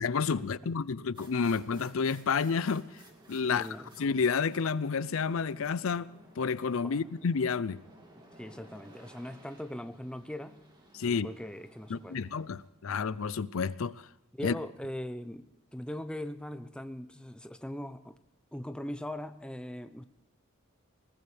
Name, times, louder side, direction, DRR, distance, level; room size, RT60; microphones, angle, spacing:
voice 1, 0.0-2.9 3.3-3.7 4.0-6.1 6.4-7.8 10.9-11.3 11.9-13.9 14.4-14.5, left 5 dB, 75° left, 0.5 m, -30 dB
sound 1, 1.1-12.7, right 1 dB, 20° right, 2.6 m, -56 dB
voice 2, 3.4-3.9 6.8-7.1 8.4-10.6 11.1-12.2 14.3-18.2 18.5-20.0, left 1 dB, 5° left, 0.7 m, -40 dB
21.0 x 18.5 x 3.4 m
head